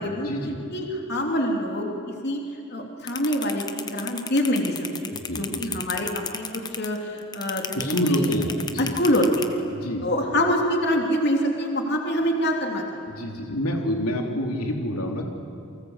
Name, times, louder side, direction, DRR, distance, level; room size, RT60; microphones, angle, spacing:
voice 1, 0.0-0.6 5.1-5.6 7.7-9.0 9.7-10.0 13.1-15.3, equal, 80° left, 2 dB, 3.3 m, -27 dB
voice 2, 0.7-1.9 2.2-2.4 2.7-4.7 5.0-6.5 6.8-8.3 8.9-9.6 10.0-12.8, equal, 45° left, 1 dB, 3.2 m, -25 dB
sound 1, 3.1-9.5, left 6 dB, 20° left, 1.2 m, -31 dB
29.0 x 24.0 x 8.2 m, 2.5 s
head